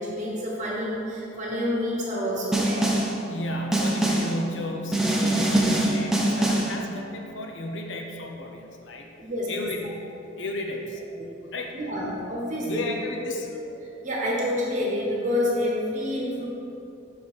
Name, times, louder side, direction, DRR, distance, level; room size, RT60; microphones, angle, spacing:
voice 1, 0.0-2.9 6.3-6.5 9.1-9.6 11.2-11.3 11.7-12.9 13.2-13.3 13.8-16.5, left 1 dB, 40° right, -4 dB, 1.2 m, -28 dB
Snare drum, 2.5-3.2 3.7-4.4 4.9-6.8, right 1 dB, ahead, 0.6 m, -23 dB
voice 2, 3.3-9.1 9.5-10.1 10.4-11.0 11.5-11.8 12.7-13.5, left 1 dB, 65° left, 2 dB, 0.7 m, -34 dB
6.2 x 5.1 x 5.3 m, 2.7 s
head